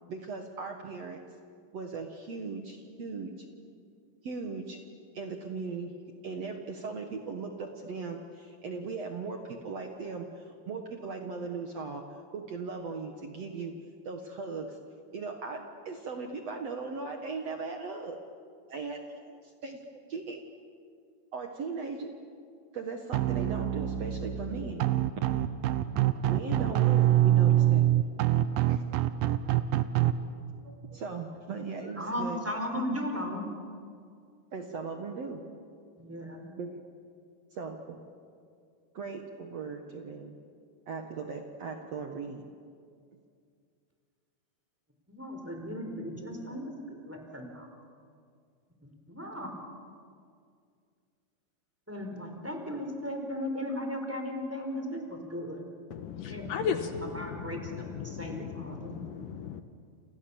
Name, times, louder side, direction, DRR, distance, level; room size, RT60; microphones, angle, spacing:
voice 1, 0.1-1.2 1.7-3.3 4.2-4.8 5.1-5.9 6.2-12.0 12.3-13.7 14.1-14.8 15.1-18.2 18.7-19.8 20.1-20.4 21.3-22.1 22.7-24.9 26.3-27.8 28.7-28.8 30.6-32.4 34.5-35.4 36.6-36.8 37.5-38.0 38.9-40.4 40.9-42.4, right 4 dB, 55° right, 4 dB, 2.2 m, -38 dB
sound 1, 23.1-30.1, right 13 dB, 75° right, 2.6 m, -25 dB
voice 2, 32.0-33.4 36.0-36.5 45.1-47.7 48.8-49.5 51.9-55.6 56.3-59.0, left 1 dB, 5° right, 3 dB, 3.9 m, -36 dB
voice 3, 55.9-59.6, left 7 dB, 70° left, 8 dB, 2.4 m, -36 dB
29.5 x 28.5 x 7.1 m, 2.2 s
omnidirectional pair, 4.3 m